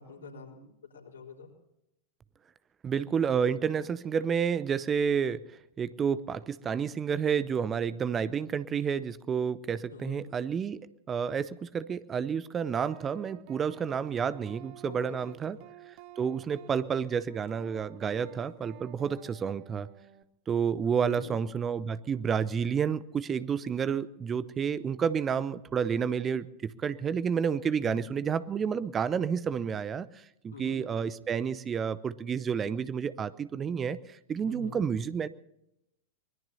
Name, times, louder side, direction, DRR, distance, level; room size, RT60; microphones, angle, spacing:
voice 1, 0.0-1.5 9.9-10.2 14.8-15.6 21.0-21.3 27.8-28.0 30.5-30.8 34.4-34.8, left 2 dB, 70° left, 0 dB, 4.0 m, -46 dB
voice 2, 2.8-5.4 5.8-10.8 11.1-15.6 15.9-19.9 20.5-35.3, right 7 dB, 20° right, 17 dB, 0.6 m, -30 dB
sound 1, 12.8-20.2, right 14 dB, 45° right, 0.9 m, -52 dB
24.5 x 20.5 x 2.8 m, 0.83 s
figure-of-eight pair, 90°, 0 cm